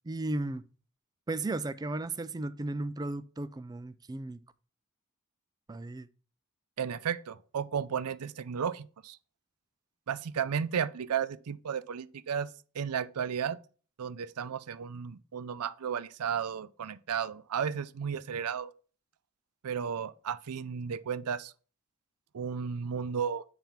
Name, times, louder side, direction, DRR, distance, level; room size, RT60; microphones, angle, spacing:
voice 1, 0.0-0.6 1.3-4.4 5.7-6.1, right 2 dB, 15° right, 0.3 m, -35 dB
voice 2, 6.8-9.2 10.1-12.5 12.7-13.6 14.0-18.7 19.6-21.5 22.3-23.4, right 7 dB, 85° right, 0.5 m, -33 dB
8.9 x 3.5 x 5.7 m
head